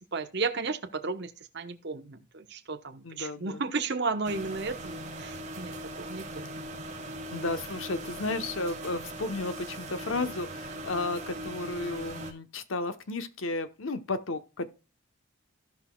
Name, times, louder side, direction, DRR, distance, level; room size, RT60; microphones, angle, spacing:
voice 1, 0.0-6.5, right 4 dB, 55° right, 1.0 m, -34 dB
voice 2, 3.0-3.6 7.3-14.7, left 2 dB, 75° left, 0.9 m, -33 dB
sound 1, 4.2-12.3, right 1 dB, 35° right, 1.6 m, -40 dB
16.0 x 5.9 x 2.3 m
head